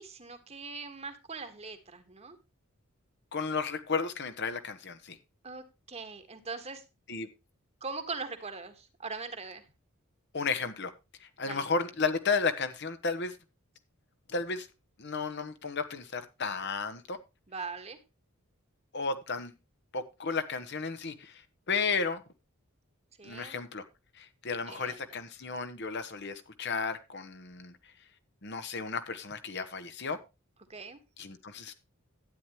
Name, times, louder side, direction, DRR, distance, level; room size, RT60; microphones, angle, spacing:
voice 1, 0.0-2.4 5.4-6.8 7.8-9.6 11.4-11.7 17.5-18.0 23.2-23.6 24.7-25.0 30.7-31.0, right 4 dB, 30° right, 1.5 m, -41 dB
voice 2, 3.3-5.2 7.1-7.3 10.3-10.9 11.2-13.4 14.3-14.7 15.0-17.2 18.9-19.5 19.9-21.4 21.7-22.2 23.2-23.8 24.2-27.8 28.4-30.2 31.2-31.7, left 4 dB, 55° left, 1.2 m, -33 dB
12.5 x 9.3 x 3.1 m
head